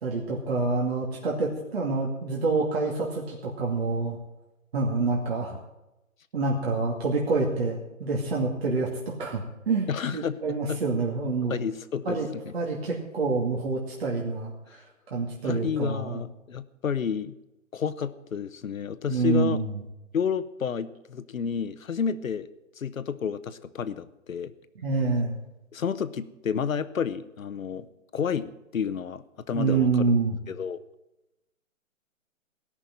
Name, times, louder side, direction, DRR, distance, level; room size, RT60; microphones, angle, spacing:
voice 1, 0.0-4.2 4.7-5.6 6.3-8.9 9.2-11.6 12.1-12.3 12.5-14.5 15.1-16.2 19.1-19.8 24.8-25.4 29.5-30.4, right 3 dB, 45° right, -2 dB, 2.5 m, -27 dB
voice 2, 9.9-10.4 10.7-10.8 11.5-12.4 15.4-17.4 17.7-19.6 20.1-22.5 22.8-24.5 25.7-27.9 28.1-30.1 30.5-30.8, left 7 dB, 75° left, 14 dB, 1.1 m, -30 dB
17.5 x 6.3 x 8.8 m, 0.94 s
hypercardioid pair, 165°, 41 cm